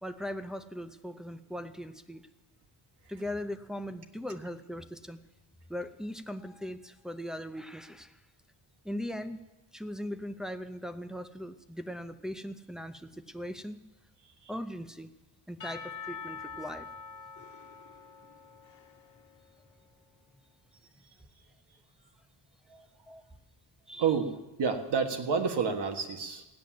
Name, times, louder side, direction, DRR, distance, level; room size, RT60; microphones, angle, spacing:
voice 1, 0.0-2.3 3.1-5.2 5.7-8.2 8.8-9.4 9.7-13.8 14.5-15.1 15.5-16.9 23.1-23.2 23.9-24.1, equal, ahead, 8 dB, 0.5 m, -39 dB
Percussion / Church bell, 15.6-19.7, left 6 dB, 40° left, 1.0 m, -45 dB
voice 2, 24.0-24.3 24.6-26.4, right 6 dB, 60° right, 6 dB, 1.7 m, -29 dB
16.0 x 10.0 x 7.6 m, 1.0 s
cardioid pair, 140°, 47 cm